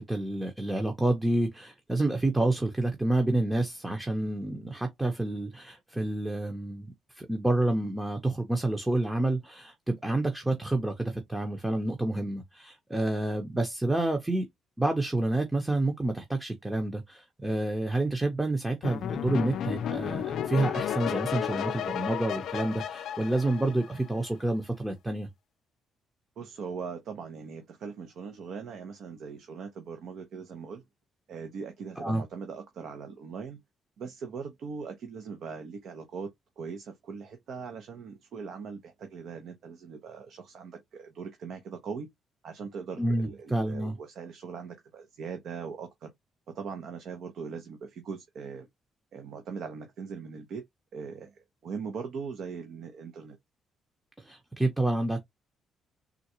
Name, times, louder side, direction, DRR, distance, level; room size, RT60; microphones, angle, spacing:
voice 1, 0.0-14.5 14.8-25.3 32.0-32.2 43.0-44.0 54.2-55.2, right 2 dB, 10° right, 0.7 m, -29 dB
sound 1, 18.8-24.3, left 9 dB, 75° left, 0.4 m, -33 dB
voice 2, 26.4-30.8 31.3-33.6 34.0-36.3 36.6-42.1 42.4-46.1 46.5-48.7 49.1-50.6 50.9-53.4, right 5 dB, 70° right, 0.7 m, -40 dB
3.7 x 2.2 x 2.8 m
cardioid pair, 90°, 0 cm